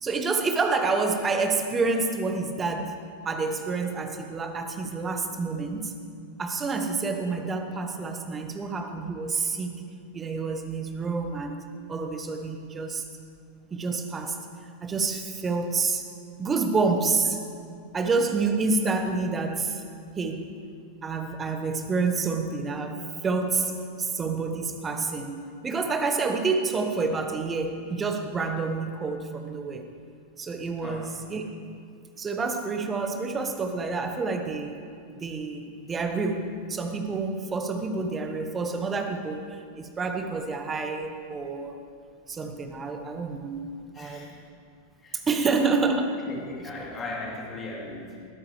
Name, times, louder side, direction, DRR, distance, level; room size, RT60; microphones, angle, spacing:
voice 1, 0.0-3.0 3.2-5.9 6.4-9.8 10.1-11.6 11.9-13.0 13.7-14.4 14.8-16.0 16.4-17.4 17.9-19.8 20.2-20.5 21.0-23.7 24.0-29.8 30.4-31.4 32.2-34.8 35.2-41.7 42.3-44.3 45.1-46.0, right 4 dB, 20° right, 5 dB, 1.2 m, -28 dB
voice 2, 43.9-44.3 45.0-45.7 46.3-48.3, left 2 dB, 25° left, -3 dB, 3.1 m, -38 dB
20.0 x 13.0 x 3.3 m, 2.2 s
figure-of-eight pair, 90°, 0 cm